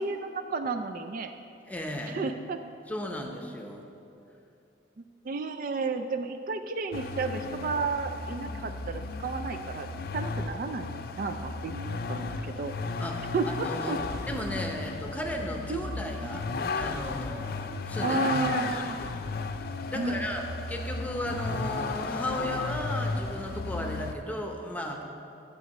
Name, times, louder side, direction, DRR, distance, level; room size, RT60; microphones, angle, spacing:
voice 1, 0.0-1.3 2.1-2.6 5.0-9.9 10.1-12.7 13.3-14.0 15.7-16.0 16.3-16.4 18.0-19.0 19.9-20.3, right 4 dB, 45° right, 7 dB, 0.3 m, -32 dB
voice 2, 1.7-2.2 2.9-3.8 13.0-13.3 13.6-14.0 14.2-16.4 16.7-18.2 18.7-19.1 19.9-25.0, left 1 dB, 10° left, 2 dB, 0.7 m, -35 dB
Vehicle, 6.9-24.1, left 3 dB, 50° left, 0.4 m, -34 dB
11.5 x 5.0 x 6.4 m, 2.7 s
head